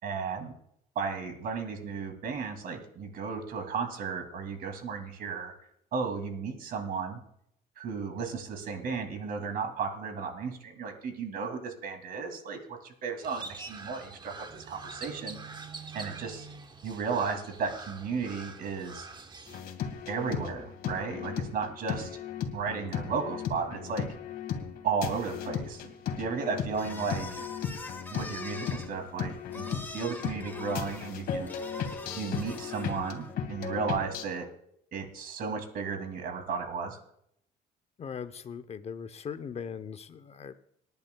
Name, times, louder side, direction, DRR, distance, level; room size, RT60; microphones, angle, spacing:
voice 1, 0.0-0.5 1.0-5.5 5.9-7.2 7.8-15.6 15.9-16.5 16.8-19.1 20.1-22.2 22.5-24.1 24.8-25.9 26.2-27.5 28.1-31.5 32.1-34.5 34.9-37.0, right 5 dB, 60° right, 5 dB, 2.5 m, -34 dB
Crow, 13.2-19.6, right 4 dB, 25° right, 1.1 m, -45 dB
sound 1, 19.5-34.2, left 7 dB, 65° left, 1.9 m, -36 dB
sound 2, 26.7-33.3, left 3 dB, 10° left, 1.7 m, -44 dB
voice 2, 38.0-40.5, left 7 dB, 40° left, 12 dB, 0.7 m, -39 dB
26.0 x 10.5 x 2.3 m, 0.73 s
cardioid pair, 110°, 17 cm